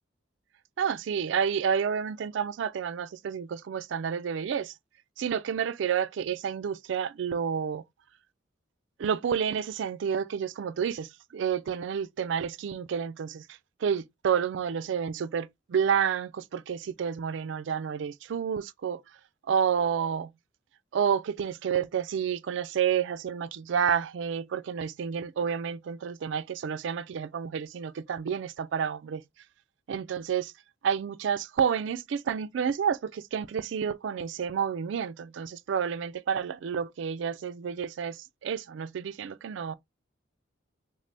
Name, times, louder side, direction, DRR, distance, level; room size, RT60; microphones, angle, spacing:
voice 1, 0.8-4.7 5.2-7.8 9.0-19.0 19.5-20.3 20.9-29.2 29.9-30.5 30.8-39.7, right 7 dB, 70° right, 0.3 m, -30 dB
3.6 x 3.3 x 2.6 m
head